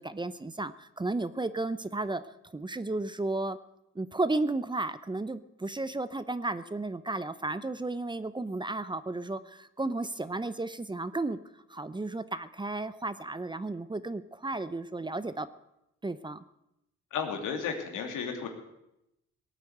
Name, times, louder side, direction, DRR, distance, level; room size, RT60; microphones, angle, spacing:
voice 1, 0.0-2.2 2.5-3.6 3.9-11.4 11.7-15.5 16.0-16.4, right 2 dB, 15° right, 14 dB, 0.7 m, -33 dB
voice 2, 17.1-18.5, left 6 dB, 85° left, 3 dB, 2.7 m, -33 dB
17.5 x 9.1 x 8.0 m, 0.85 s
cardioid pair, 90°, 30 cm